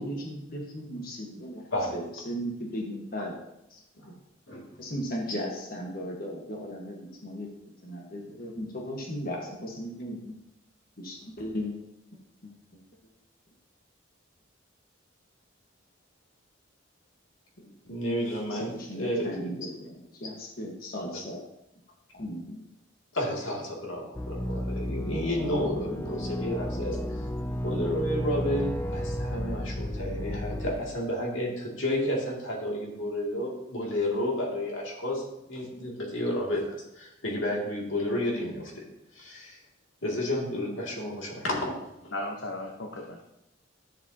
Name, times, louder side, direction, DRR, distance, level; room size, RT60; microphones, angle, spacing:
voice 1, 0.0-3.4 3.7-3.8 4.8-7.5 7.8-10.4 11.0-11.8 12.4-12.8 18.5-21.5 22.1-22.6, equal, 50° left, -1 dB, 1.4 m, -36 dB
voice 2, 17.9-19.7 23.1-27.2 27.6-38.8 39.1-39.6 40.0-42.1, left 1 dB, 80° left, -2 dB, 2.4 m, -31 dB
sound 1, 24.1-30.8, equal, 10° left, 0.4 m, -32 dB
voice 3, 42.1-43.2, left 1 dB, 65° left, 0 dB, 1.0 m, -36 dB
12.0 x 7.4 x 2.8 m, 0.86 s
head